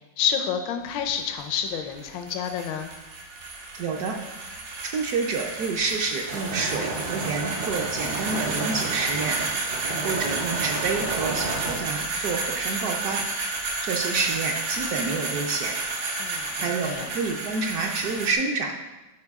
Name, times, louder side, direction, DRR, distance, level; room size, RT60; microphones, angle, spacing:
voice 1, 0.2-2.9 9.9-10.1 16.2-17.1, left 8 dB, 80° left, 6 dB, 1.3 m, -29 dB
sound 1, 0.8-18.3, right 3 dB, 90° right, 1.9 m, -31 dB
voice 2, 3.8-4.2 4.8-9.4 10.0-13.3 13.8-15.7 16.6-18.7, right 4 dB, 65° right, 2 dB, 1.0 m, -28 dB
sound 2, 6.3-11.8, right 3 dB, 45° right, 0.7 m, -32 dB
9.6 x 4.7 x 3.5 m, 1.1 s
omnidirectional pair, 2.0 m